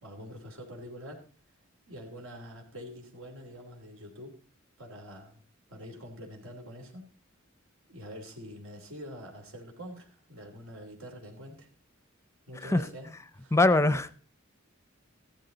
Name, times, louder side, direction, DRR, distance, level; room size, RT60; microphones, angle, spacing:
voice 1, 0.0-1.2 1.9-4.4 4.8-5.4 5.7-7.1 7.9-11.7 12.5-13.6, equal, 90° right, 3.2 m, -45 dB
voice 2, 13.5-14.1, left 2 dB, 15° left, 0.5 m, -22 dB
15.0 x 12.0 x 4.0 m
head